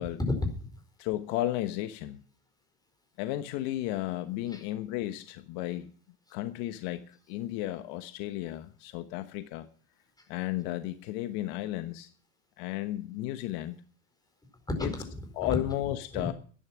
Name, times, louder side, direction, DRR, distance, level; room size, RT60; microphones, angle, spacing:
voice 1, 0.2-0.8 4.5-4.7 10.2-10.3 14.7-15.6 16.1-16.3, left 2 dB, 10° left, 5 dB, 4.5 m, -32 dB
voice 2, 1.0-2.2 3.2-5.9 6.3-9.7 10.3-12.1 12.6-13.8 14.8-14.9 15.4-16.3, left 14 dB, 65° left, 9 dB, 1.2 m, -33 dB
12.5 x 11.0 x 6.0 m, 0.42 s
supercardioid pair, 110°, 43 cm